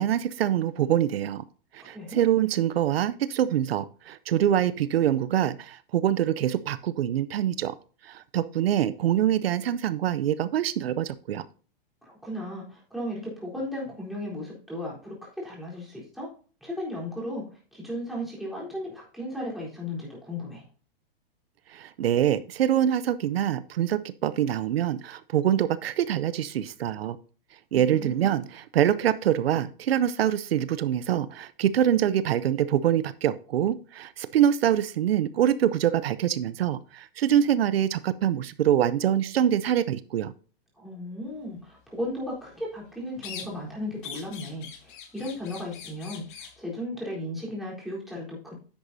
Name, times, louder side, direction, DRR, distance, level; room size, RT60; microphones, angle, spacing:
voice 1, 0.0-1.4 1.7-7.7 8.0-11.4 21.7-27.2 27.7-40.3, right 10 dB, 85° right, 16 dB, 0.7 m, -25 dB
voice 2, 1.8-2.2 12.0-16.3 16.6-20.6 27.7-28.3 40.7-48.5, left 1 dB, ahead, -5 dB, 3.9 m, -35 dB
sound 1, 43.2-43.7 44.0-46.6, left 7 dB, 55° left, 2.7 m, -42 dB
10.0 x 8.1 x 2.7 m, 0.39 s
hypercardioid pair, 150°, 29 cm